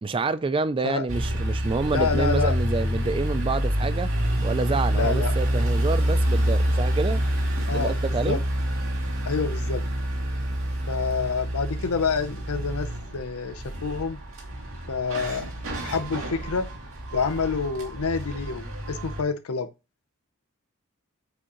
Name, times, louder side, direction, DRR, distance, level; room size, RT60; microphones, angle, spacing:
voice 1, 0.0-4.1 4.4-7.2 7.7-8.4, right 3 dB, 25° right, 0.3 m, -27 dB
sound 1, 1.1-19.2, equal, 60° right, 2.4 m, -27 dB
voice 2, 1.9-2.6 4.9-5.3 7.7-8.0 8.3-8.4 9.3-9.8 10.9-14.2 14.9-15.5 15.8-16.7 17.1-19.7, left 5 dB, 75° left, 0.6 m, -27 dB
8.3 x 5.0 x 3.0 m
head